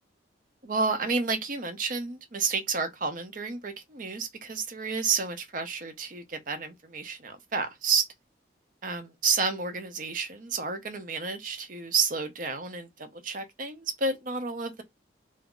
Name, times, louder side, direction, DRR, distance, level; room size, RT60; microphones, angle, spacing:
voice 1, 0.6-8.1 8.8-14.8, right 4 dB, 45° right, 0.7 m, -30 dB
2.7 x 2.3 x 3.8 m
head